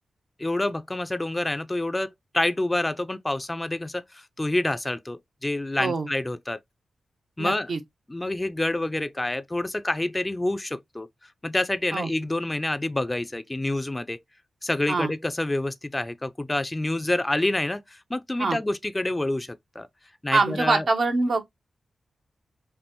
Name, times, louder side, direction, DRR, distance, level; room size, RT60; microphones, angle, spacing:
voice 1, 0.4-6.6 7.4-7.7 8.1-11.1 11.4-14.2 14.6-19.9 20.2-20.9, left 1 dB, 20° left, 0.5 m, -27 dB
voice 2, 7.4-7.8 11.9-12.1 14.9-15.1 18.4-18.6 20.3-21.4, right 3 dB, 65° right, 1.2 m, -24 dB
5.3 x 2.4 x 3.0 m
cardioid pair, 50°, 0 cm